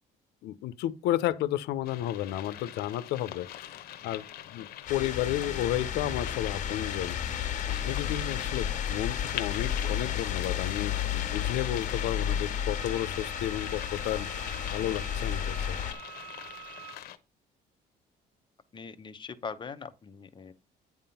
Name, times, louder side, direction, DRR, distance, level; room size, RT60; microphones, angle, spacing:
voice 1, 0.4-14.3 14.6-15.8 16.5-16.7, left 13 dB, 85° left, 0.6 m, -32 dB
sound 1, 1.8-17.2, left 12 dB, 65° left, 1.0 m, -44 dB
sound 2, 4.9-15.9, left 9 dB, 50° left, 1.7 m, -32 dB
Wind instrument woodwind instrument, 12.7-17.0, right 10 dB, 75° right, 1.4 m, -47 dB
voice 2, 18.7-20.5, left 5 dB, 30° left, 0.9 m, -41 dB
9.3 x 3.7 x 5.7 m
cardioid pair, 110°, 17 cm